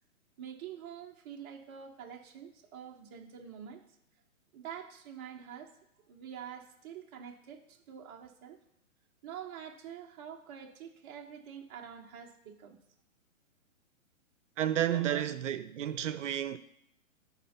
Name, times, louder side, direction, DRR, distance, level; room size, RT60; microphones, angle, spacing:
voice 1, 0.4-3.9 4.5-5.7 6.0-8.6 9.2-12.8 14.9-15.2, right 8 dB, 20° right, 0.6 m, -46 dB
voice 2, 14.6-16.6, right 11 dB, 65° right, 0.6 m, -31 dB
10.5 x 4.3 x 5.6 m
hypercardioid pair, 140°, 41 cm